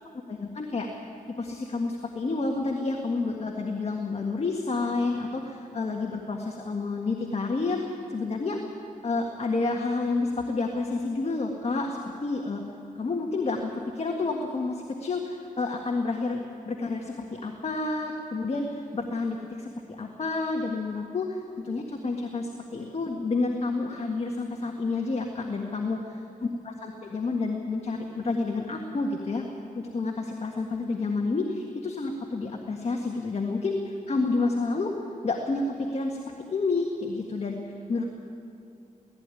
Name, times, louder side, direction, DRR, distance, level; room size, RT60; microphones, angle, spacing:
voice 1, 0.3-1.0 1.4-8.6 9.0-12.6 13.0-19.7 20.0-26.0 26.6-29.5 29.8-34.9 35.2-36.2 36.5-38.1, left 3 dB, 45° left, 2 dB, 1.7 m, -29 dB
17.5 x 15.5 x 9.9 m, 2.7 s
wide cardioid pair, 105°, 15 cm